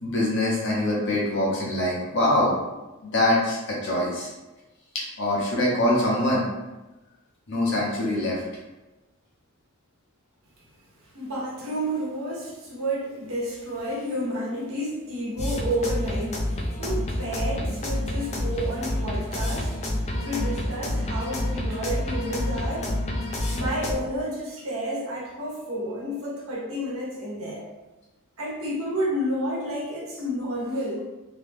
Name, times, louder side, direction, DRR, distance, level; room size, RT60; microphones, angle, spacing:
voice 1, 0.0-2.5 3.0-4.3 4.9-6.4 7.5-8.4, left 1 dB, 55° left, -4 dB, 1.0 m, -24 dB
voice 2, 11.1-23.0 23.5-27.6 28.4-31.1, equal, 75° right, -5 dB, 1.1 m, -30 dB
sound 1, 15.4-23.9, left 1 dB, 30° left, 0.4 m, -28 dB
3.0 x 2.3 x 3.4 m, 1.1 s
head